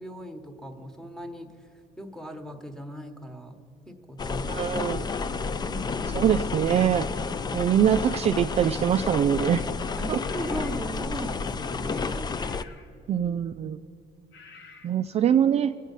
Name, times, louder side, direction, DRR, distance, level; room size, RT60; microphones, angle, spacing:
voice 1, 0.0-1.6 2.0-3.5 3.9-4.7 5.6-6.3 10.0-12.4, equal, 5° left, 7 dB, 1.2 m, -38 dB
sound 1, 4.2-12.6, left 4 dB, 25° left, 0.4 m, -31 dB
voice 2, 4.5-5.1 6.1-7.1 7.5-9.7 10.1-10.2 13.1-13.8 14.8-15.7, right 9 dB, 40° right, 8 dB, 0.4 m, -23 dB
sound 2, 8.6-8.8 10.2-10.9 11.3-11.6 12.3-12.9 14.3-14.9, left 5 dB, 80° left, 1.4 m, -49 dB
22.0 x 8.3 x 5.4 m, 2.6 s
cardioid pair, 110°, 17 cm